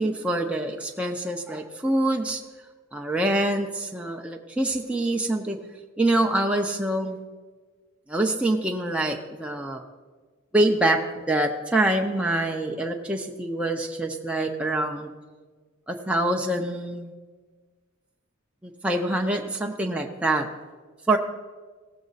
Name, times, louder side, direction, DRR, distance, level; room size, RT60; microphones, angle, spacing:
voice 1, 0.0-2.4 2.9-5.6 6.0-7.2 8.1-9.8 10.5-11.0 11.3-15.1 15.9-17.1 18.6-20.5 21.1-21.2, right 1 dB, 5° right, 1 dB, 0.6 m, -25 dB
17.5 x 7.3 x 4.0 m, 1.4 s
head